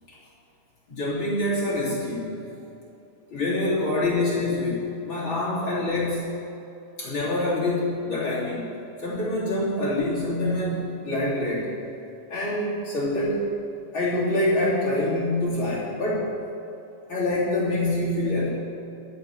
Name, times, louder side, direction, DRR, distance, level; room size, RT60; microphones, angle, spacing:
voice 1, 0.9-2.4 3.3-6.2 7.0-8.6 9.0-11.7 12.3-13.5 13.9-16.3 17.1-18.5, left 1 dB, 35° left, -8 dB, 3.5 m, -25 dB
24.0 x 9.3 x 4.3 m, 2.8 s
omnidirectional pair, 4.0 m